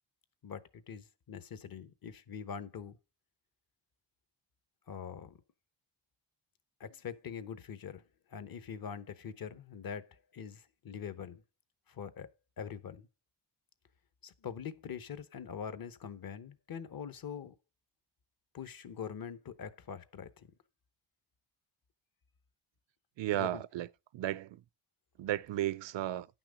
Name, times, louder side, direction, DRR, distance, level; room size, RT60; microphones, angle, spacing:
voice 1, 0.4-3.0 4.9-5.4 6.8-8.0 8.3-11.4 11.9-12.3 12.6-13.1 14.2-17.6 18.5-20.5 23.3-23.6, left 7 dB, 50° left, 1.0 m, -43 dB
voice 2, 23.2-23.9 24.1-24.6 25.2-26.3, right 13 dB, 70° right, 0.6 m, -34 dB
9.8 x 6.0 x 5.1 m
cardioid pair, 115°, 46 cm